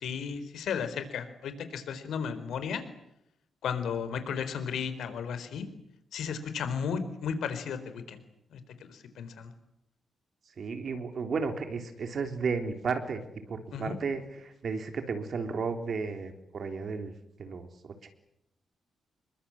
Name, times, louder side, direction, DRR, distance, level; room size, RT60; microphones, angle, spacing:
voice 1, 0.0-2.8 3.6-5.7 6.1-8.2 8.5-9.5 13.7-14.0, left 6 dB, 75° left, 11 dB, 4.2 m, -34 dB
voice 2, 10.6-13.2 13.5-17.1 17.4-18.1, right 5 dB, 45° right, 6 dB, 3.7 m, -33 dB
28.0 x 23.0 x 8.8 m, 0.81 s
wide cardioid pair, 155°, 0 cm